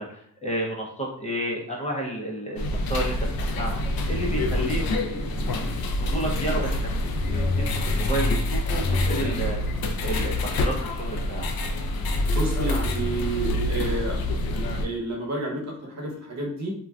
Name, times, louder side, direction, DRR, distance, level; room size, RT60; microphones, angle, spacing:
voice 1, 0.0-3.2 3.5-3.8 4.1-6.9 7.2-9.6 10.0-11.5, right 1 dB, 20° left, -3 dB, 0.5 m, -31 dB
sound 1, 2.6-14.9, left 1 dB, 85° left, 0.5 m, -26 dB
voice 2, 12.2-14.2 14.8-16.7, right 1 dB, 50° right, -1 dB, 0.9 m, -30 dB
2.6 x 2.2 x 3.3 m, 0.63 s
wide cardioid pair, 145°, 35 cm